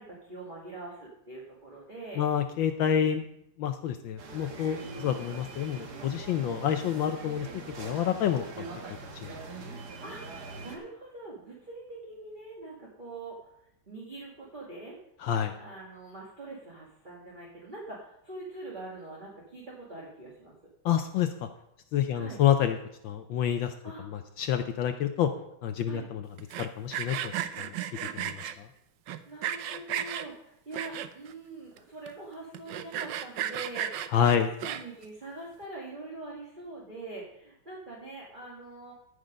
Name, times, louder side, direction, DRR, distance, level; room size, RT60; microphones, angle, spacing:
voice 1, 0.0-2.3 4.8-5.1 9.6-10.2 10.6-13.4 13.9-15.0 15.6-20.5 22.1-22.4 23.8-24.1 25.9-26.1 29.2-38.9, right 2 dB, 25° right, -6 dB, 1.9 m, -44 dB
voice 2, 2.2-3.2 3.6-7.5 7.8-8.7 9.2-9.3 15.2-15.5 20.8-21.5 21.9-22.8 23.0-23.7 24.1-25.3 25.6-26.2 26.6-27.3 27.6-27.7 28.1-28.7 34.1-34.5, left 9 dB, 70° left, 7 dB, 1.3 m, -28 dB
sound 1, 4.2-10.8, right 3 dB, 55° right, 1.8 m, -43 dB
Sawing, 26.4-28.5 29.1-30.3 30.7-31.3 31.8-31.9 32.1-32.2 32.5-35.0, right 10 dB, 70° right, 1.2 m, -34 dB
13.5 x 6.6 x 5.1 m, 0.77 s
omnidirectional pair, 2.3 m